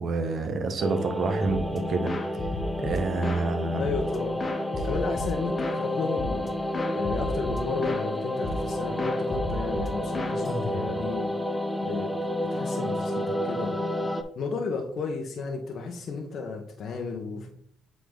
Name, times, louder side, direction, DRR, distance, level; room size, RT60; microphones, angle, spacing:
voice 1, 0.0-2.1 2.8-3.8, right 3 dB, 50° right, 7 dB, 1.1 m, -28 dB
sound 1, 0.8-14.2, left 1 dB, 5° left, 0.8 m, -30 dB
sound 2, 1.5-1.8 2.1-3.5 3.8-5.8 6.2-6.5 6.7-8.1 8.4-8.7 9.0-11.1, left 2 dB, 30° left, 1.1 m, -34 dB
voice 2, 3.8-4.4 4.8-11.3 11.8-13.9 14.3-17.5, left 4 dB, 60° left, 2 dB, 1.0 m, -33 dB
8.0 x 3.8 x 3.8 m, 0.64 s
cardioid pair, 90°, 0 cm